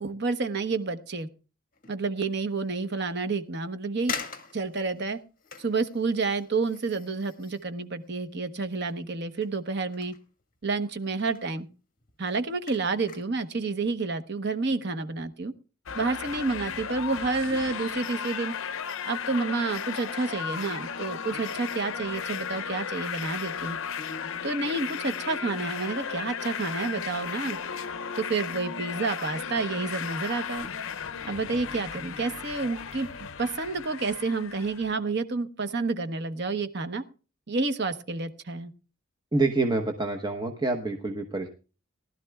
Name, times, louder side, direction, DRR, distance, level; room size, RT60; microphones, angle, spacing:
voice 1, 0.0-1.3 1.9-4.1 4.5-5.2 5.6-10.1 10.6-11.7 12.2-15.5 15.9-18.5 19.0-23.8 24.4-27.6 28.2-30.7 31.2-33.1 33.4-37.0 37.5-38.7, right 3 dB, 55° right, 1.0 m, -29 dB
sound 1, 1.7-2.1 2.6-2.7 3.5-3.6 4.1-9.1 9.3-10.8 11.1-11.5 12.0-13.5 13.9-14.1, left 6 dB, 40° left, 1.9 m, -43 dB
sound 2, 15.9-35.0, left 7 dB, 70° left, 0.6 m, -35 dB
voice 2, 39.3-41.5, right 3 dB, 20° right, 0.9 m, -27 dB
19.5 x 12.0 x 2.3 m
head